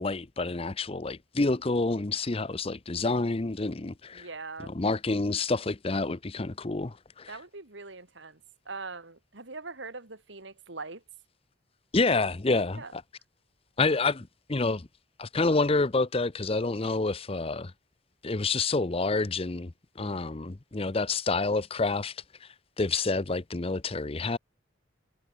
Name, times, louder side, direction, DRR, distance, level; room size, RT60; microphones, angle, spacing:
voice 1, 0.0-4.3 4.7-7.4 11.9-13.0 13.8-14.9 15.2-17.7 18.2-22.2 22.4-22.5 22.8-24.4, left 3 dB, 30° left, 0.7 m, -28 dB
voice 2, 4.1-4.9 7.3-8.4 8.7-11.0 12.7-12.9 20.0-20.4, right 3 dB, 65° right, 2.5 m, -42 dB
head